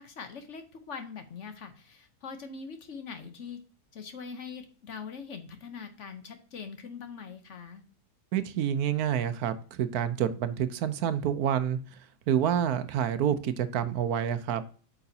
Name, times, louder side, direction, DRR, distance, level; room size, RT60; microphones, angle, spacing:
voice 1, 0.0-3.6 3.9-7.8, left 5 dB, 55° left, 8 dB, 1.0 m, -42 dB
voice 2, 8.3-11.8 12.3-14.6, right 9 dB, 75° right, 12 dB, 1.1 m, -28 dB
8.6 x 5.8 x 2.7 m, 0.41 s
omnidirectional pair, 1.7 m